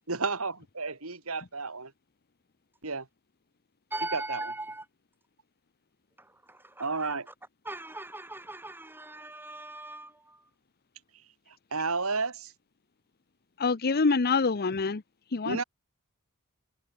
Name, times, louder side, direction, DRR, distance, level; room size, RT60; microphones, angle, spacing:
voice 1, 0.1-1.9 2.8-3.1 4.1-4.4 6.8-7.3 11.7-12.5 15.4-15.6, right 4 dB, 70° right, 3.2 m, -32 dB
voice 2, 3.9-4.9 6.2-7.3 7.6-10.5, right 2 dB, 10° right, 5.5 m, -40 dB
voice 3, 13.6-15.0 15.3-15.6, left 4 dB, 45° left, 0.8 m, -26 dB
head